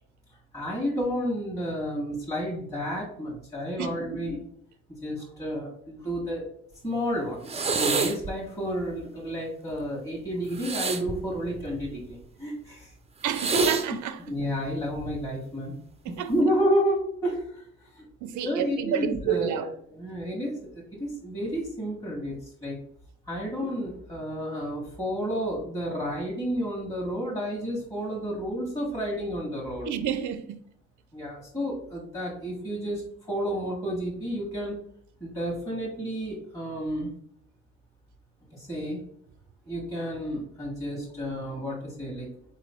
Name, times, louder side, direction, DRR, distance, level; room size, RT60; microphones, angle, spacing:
voice 1, 0.5-4.4 4.9-6.5 6.8-12.9 14.3-15.7 16.3-18.0 18.4-22.4 22.6-22.8 23.3-29.9 31.1-34.8 35.2-37.1 38.5-39.0 39.7-42.3, equal, 10° left, 1.5 m, -31 dB
voice 2, 3.8-4.2 13.2-14.2 16.0-16.3 18.2-19.7 29.9-30.6, right 10 dB, 75° right, 0.6 m, -30 dB
sound 1, 7.5-8.3 10.5-12.1 13.3-13.9 14.9-15.3, right 4 dB, 20° right, 0.5 m, -28 dB
4.1 x 3.1 x 4.2 m
cardioid pair, 90°, 30 cm